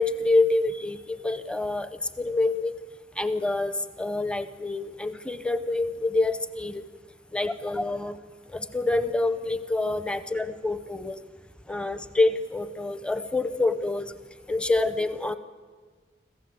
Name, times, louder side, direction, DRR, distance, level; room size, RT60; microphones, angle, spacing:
voice 1, 0.0-1.9 2.2-2.7 3.2-6.8 7.3-8.2 8.5-11.2 11.7-14.1 14.5-15.3, left 2 dB, 5° left, 11 dB, 0.7 m, -26 dB
26.0 x 15.0 x 7.8 m, 1.5 s
head